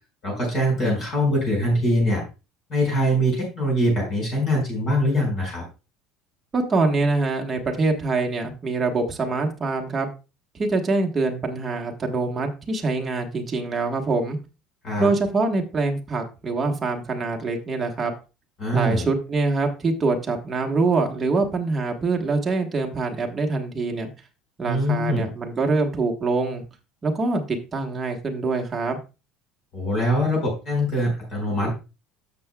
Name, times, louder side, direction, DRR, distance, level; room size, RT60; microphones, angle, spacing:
voice 1, 0.2-2.2 2.7-5.6 14.8-15.1 18.6-19.1 24.6-25.3 29.7-31.7, equal, 35° left, -1 dB, 5.3 m, -23 dB
voice 2, 6.5-10.1 10.5-14.4 15.0-18.1 18.7-24.1 24.6-26.6 27.0-29.0, right 3 dB, 15° right, 2 dB, 1.3 m, -24 dB
12.5 x 6.9 x 2.3 m, 0.29 s
cardioid pair, 175°, 0 cm